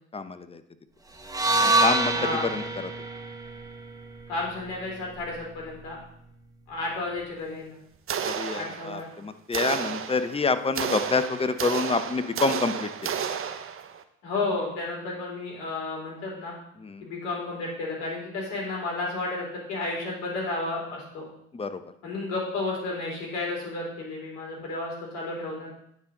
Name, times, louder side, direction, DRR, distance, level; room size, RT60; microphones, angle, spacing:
voice 1, 0.1-0.6 1.6-2.1 2.4-2.6 8.2-13.1 16.8-17.0 21.5-21.8, left 4 dB, 15° left, 11 dB, 0.9 m, -27 dB
sound 1, 1.2-5.4, right 2 dB, 10° right, 1.3 m, -27 dB
voice 2, 2.1-2.5 4.3-6.0 6.7-7.8 8.5-9.0 14.2-16.5 17.0-21.3 22.0-25.7, left 2 dB, 70° left, -2 dB, 3.8 m, -32 dB
sound 2, 8.1-9.1 9.5-14.0, right 7 dB, 35° right, 0.8 m, -32 dB
9.4 x 6.2 x 3.9 m, 0.74 s
figure-of-eight pair, 55°, 39 cm